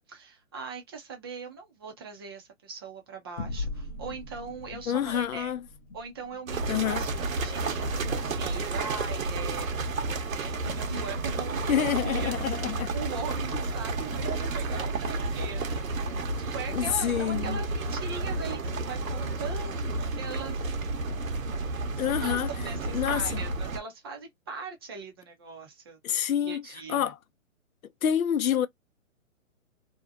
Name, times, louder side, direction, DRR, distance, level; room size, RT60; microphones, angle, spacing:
voice 1, 0.0-5.5 5.9-9.9 10.3-20.7 21.8-27.1, right 5 dB, 20° right, 0.5 m, -40 dB
sound 1, 3.4-8.2, left 3 dB, 30° left, 0.7 m, -41 dB
voice 2, 4.9-5.6 6.7-7.0 11.7-12.9 16.7-17.6 22.0-22.5 22.9-23.4 26.0-26.6 26.9-27.1 28.0-28.7, left 9 dB, 85° left, 0.6 m, -27 dB
sound 2, 6.5-23.8, right 3 dB, 80° right, 1.0 m, -31 dB
2.7 x 2.1 x 2.4 m
hypercardioid pair, 150°, 40 cm